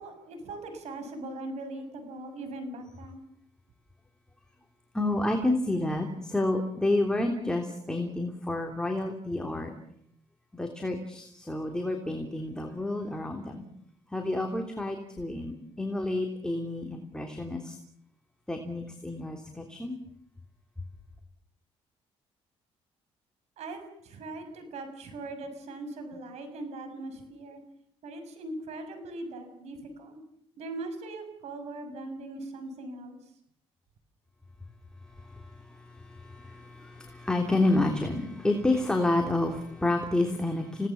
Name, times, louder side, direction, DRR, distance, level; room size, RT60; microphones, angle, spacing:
voice 1, 0.0-3.2 23.6-27.6 28.0-30.2 30.6-33.2, right 2 dB, 75° right, 8 dB, 6.4 m, -40 dB
voice 2, 4.9-9.7 10.5-13.6 14.1-17.7 18.5-20.0 35.2-40.9, left 2 dB, 5° left, 2 dB, 3.2 m, -29 dB
29.0 x 18.5 x 7.2 m, 0.68 s
cardioid pair, 100°, 11 cm